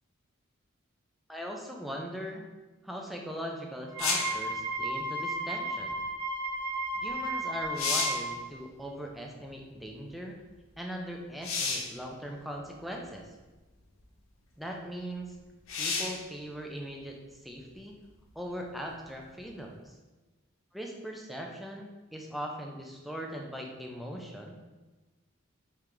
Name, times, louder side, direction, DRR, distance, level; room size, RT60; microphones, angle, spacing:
voice 1, 1.3-2.5 2.8-6.0 6.9-10.4 10.8-13.3 14.6-15.4 15.8-18.0 18.4-19.9 20.7-24.5, equal, ahead, 0 dB, 0.4 m, -40 dB
Wind instrument woodwind instrument, 3.9-8.4, right 1 dB, 25° right, 0.9 m, -34 dB
sound 1, 4.0-4.4 7.1-7.2 7.6-8.3 11.4-12.0 13.0-13.1 15.7-16.3 19.8-19.9, left 4 dB, 65° left, 0.5 m, -31 dB
3.7 x 3.3 x 3.0 m, 1.2 s
head